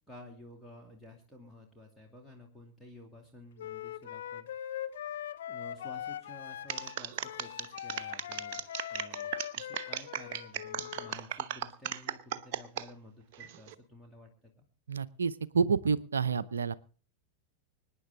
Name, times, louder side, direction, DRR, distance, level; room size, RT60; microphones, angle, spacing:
voice 1, 0.1-4.8 5.5-14.7, left 1 dB, ahead, -1 dB, 2.5 m, -52 dB
Wind instrument woodwind instrument, 3.6-11.1, left 10 dB, 60° left, 0.7 m, -41 dB
sound 1, 6.7-12.9 13.3-13.7, right 10 dB, 50° right, 0.9 m, -37 dB
voice 2, 14.9-16.7, right 5 dB, 70° right, 17 dB, 0.6 m, -29 dB
25.5 x 9.9 x 3.7 m, 0.39 s
figure-of-eight pair, 90°, 0 cm